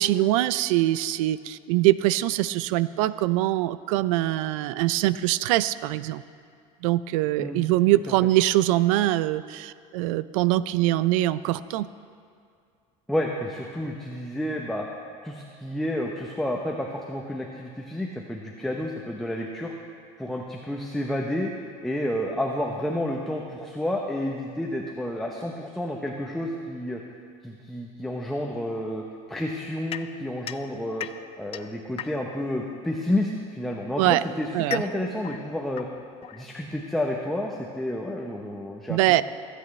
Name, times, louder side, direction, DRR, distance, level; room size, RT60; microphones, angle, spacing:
voice 1, 0.0-6.2 6.8-11.9 34.0-34.2 34.5-34.8 38.9-39.2, right 15 dB, 80° right, 16 dB, 0.4 m, -23 dB
voice 2, 13.1-14.9 15.2-19.7 20.2-21.5 21.8-27.0 27.4-31.1 31.4-35.9 36.3-39.2, left 1 dB, ahead, 0 dB, 0.8 m, -30 dB
sound 1, 29.9-32.5 33.5-36.9, left 11 dB, 35° left, 0.4 m, -39 dB
23.5 x 8.3 x 3.2 m, 2.3 s
supercardioid pair, 115°, 17 cm